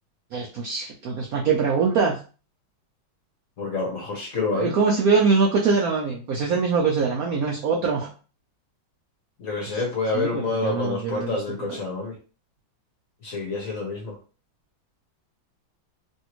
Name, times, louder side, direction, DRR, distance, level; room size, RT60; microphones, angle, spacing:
voice 1, 0.3-2.2 4.5-8.1 9.7-9.8 10.1-11.4 11.7-11.8, right 5 dB, 75° right, -1 dB, 0.8 m, -23 dB
voice 2, 3.6-4.7 9.4-12.1 13.2-14.2, left 3 dB, 55° left, -1 dB, 1.0 m, -28 dB
3.2 x 2.7 x 2.9 m, 0.35 s
omnidirectional pair, 2.2 m